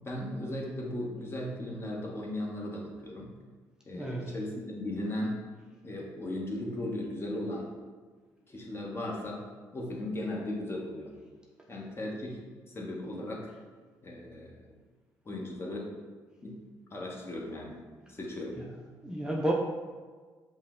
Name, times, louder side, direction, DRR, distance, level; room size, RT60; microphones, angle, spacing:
voice 1, 0.0-3.3 3.8-5.4 5.8-7.7 8.5-9.4 9.7-11.1 11.7-13.5 14.0-14.6 15.2-15.9 16.4-16.6 16.9-17.8 18.1-18.6, left 1 dB, 30° left, -1 dB, 1.0 m, -37 dB
voice 2, 3.9-4.3 18.6-18.7 19.0-19.5, right 1 dB, 10° right, -2 dB, 0.5 m, -31 dB
5.5 x 2.1 x 3.7 m, 1.5 s
supercardioid pair, 70°, 8 cm